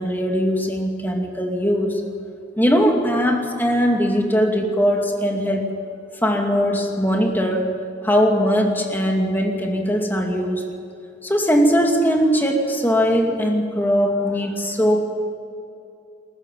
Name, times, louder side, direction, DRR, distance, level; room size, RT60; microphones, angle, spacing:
voice 1, 0.0-2.0 2.6-5.7 6.2-7.7 8.0-10.6 11.2-15.0, equal, 10° left, 1 dB, 2.4 m, -20 dB
20.5 x 14.5 x 9.2 m, 2.6 s
head